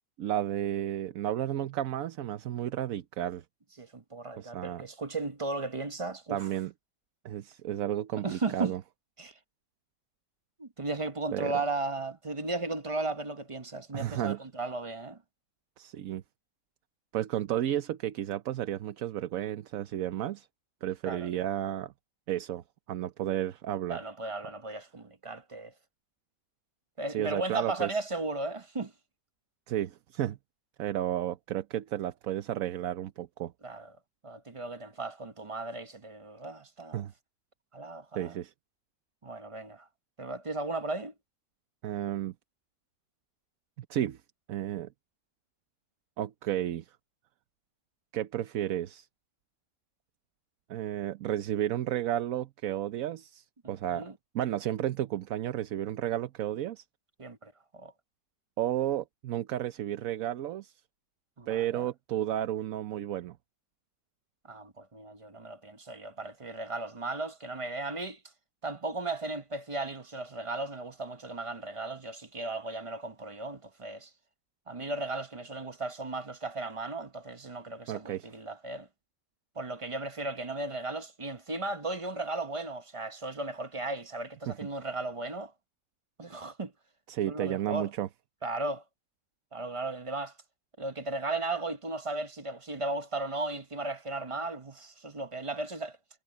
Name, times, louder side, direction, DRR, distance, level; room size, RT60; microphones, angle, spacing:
voice 1, 0.2-3.4 4.4-4.8 6.3-6.7 7.2-8.8 11.3-11.5 13.9-14.4 15.8-16.2 17.1-20.5 20.8-21.9 22.3-22.6 22.9-24.0 27.1-27.9 29.7-30.4 30.8-33.5 36.9-37.1 38.1-38.5 41.8-42.3 43.9-44.2 44.5-44.9 46.2-46.9 48.1-49.1 50.7-54.1 54.3-56.8 58.6-60.7 61.5-63.4 77.9-78.3 84.5-84.6 87.1-88.1, right 12 dB, 75° right, 1.1 m, -32 dB
voice 2, 3.8-6.5 8.2-8.7 9.2-9.3 10.6-15.2 21.0-21.3 23.9-25.7 27.0-28.9 33.6-33.9 34.2-37.1 37.7-38.4 39.2-39.9 40.2-41.1 53.6-54.1 57.2-57.9 61.4-61.9 64.5-68.2 68.6-74.1 74.7-78.9 79.6-85.5 86.2-86.7 87.3-87.9 88.4-88.8 89.5-90.3 90.8-96.0, right 2 dB, 25° right, 0.8 m, -36 dB
omnidirectional pair, 1.5 m